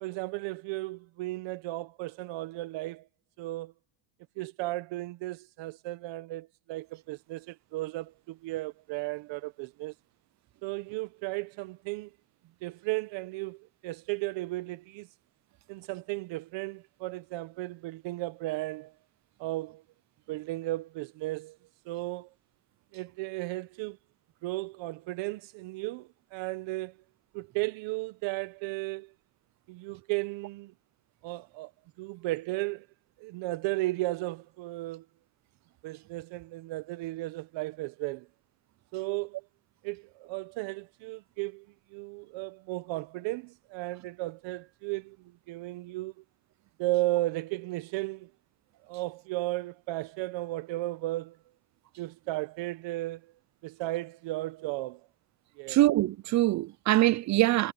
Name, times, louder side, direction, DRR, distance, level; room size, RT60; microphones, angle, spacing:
voice 1, 0.0-3.1 3.4-3.7 4.4-9.9 10.6-12.1 12.6-15.1 15.7-18.9 19.4-19.8 20.3-21.6 21.8-22.3 22.9-24.0 24.4-27.0 27.3-29.1 29.7-30.7 31.2-31.7 32.0-32.9 33.2-35.0 35.8-38.3 38.9-39.4 39.8-46.1 46.8-48.3 48.8-51.4 52.0-53.3 53.6-55.1 55.6-55.8, right 19 dB, 65° right, 1.3 m, -35 dB
voice 2, 55.7-57.7, right 16 dB, 40° right, 0.5 m, -23 dB
supercardioid pair, 105°, 49 cm